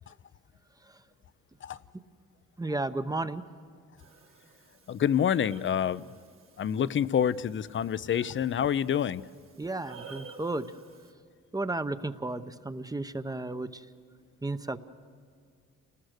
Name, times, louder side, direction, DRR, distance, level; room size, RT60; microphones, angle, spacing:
voice 1, 2.6-3.4 9.6-10.7 11.5-13.8 14.4-14.8, right 2 dB, 10° right, 11 dB, 0.8 m, -33 dB
Breathing, 4.0-11.1, right 5 dB, 45° right, 1.7 m, -52 dB
voice 2, 4.9-6.1 6.6-9.2, left 9 dB, 40° left, 17 dB, 0.6 m, -27 dB
28.5 x 19.5 x 6.6 m, 2.1 s
cardioid pair, 90°, 30 cm